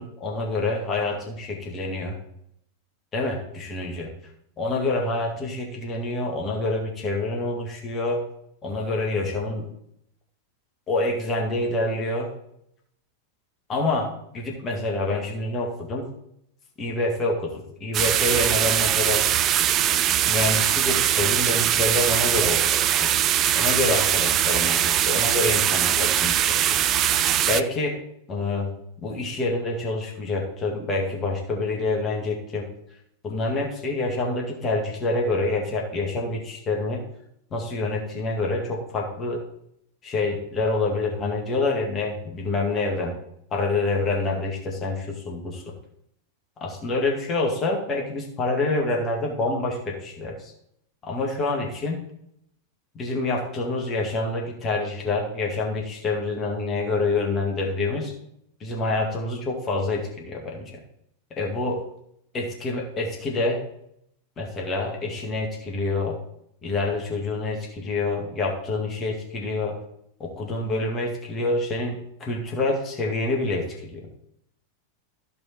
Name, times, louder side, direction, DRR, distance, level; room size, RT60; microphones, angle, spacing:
voice 1, 0.0-2.1 3.1-4.1 4.6-8.2 8.6-9.7 10.9-12.3 13.7-14.1 14.3-16.1 16.8-19.2 19.9-23.1 23.5-26.6 27.5-27.9 28.3-28.7 29.0-32.7 33.2-37.0 37.5-39.4 40.0-43.1 43.5-45.7 46.6-50.5 51.0-52.0 52.9-58.1 58.6-60.8 61.4-61.8 62.3-63.6 64.4-66.2 66.6-69.8 70.2-74.0, left 2 dB, 25° left, 0 dB, 2.1 m, -27 dB
sound 1, 17.9-27.6, right 11 dB, 35° right, 0.5 m, -21 dB
13.5 x 5.3 x 4.5 m, 0.74 s
figure-of-eight pair, 90°, 0 cm